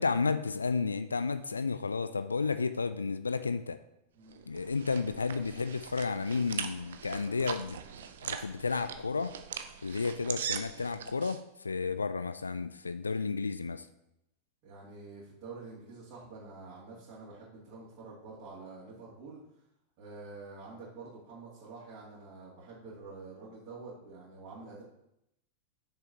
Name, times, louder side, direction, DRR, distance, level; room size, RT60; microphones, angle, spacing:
voice 1, 0.0-3.8 4.5-7.8 8.2-9.3 9.8-13.9, left 4 dB, 75° left, 12 dB, 0.3 m, -32 dB
sound 1, 4.3-11.4, right 8 dB, 60° right, 0.6 m, -41 dB
voice 2, 14.6-19.4 20.0-24.8, right 3 dB, 45° right, -9 dB, 2.8 m, -47 dB
8.1 x 6.6 x 2.9 m, 0.82 s
figure-of-eight pair, 90°, 0 cm